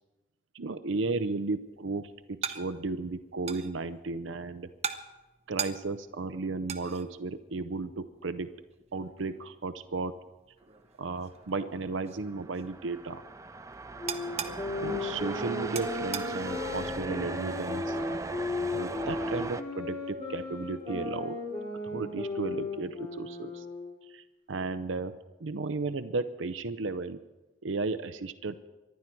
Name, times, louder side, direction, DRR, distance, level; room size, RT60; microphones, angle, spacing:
voice 1, 0.5-4.7 5.5-8.5 8.9-10.1 11.0-13.2 14.8-18.0 18.7-21.4 21.8-23.6 24.1-25.1 25.4-27.2 27.6-28.6, right 3 dB, 85° right, 11 dB, 0.7 m, -34 dB
sound 1, 0.9-19.5, right 7 dB, 35° right, 0.9 m, -44 dB
sound 2, 11.7-19.6, right 3 dB, 15° right, 0.4 m, -38 dB
sound 3, 14.0-24.0, left 2 dB, 30° left, 3.8 m, -36 dB
25.0 x 11.5 x 4.6 m, 1.1 s
head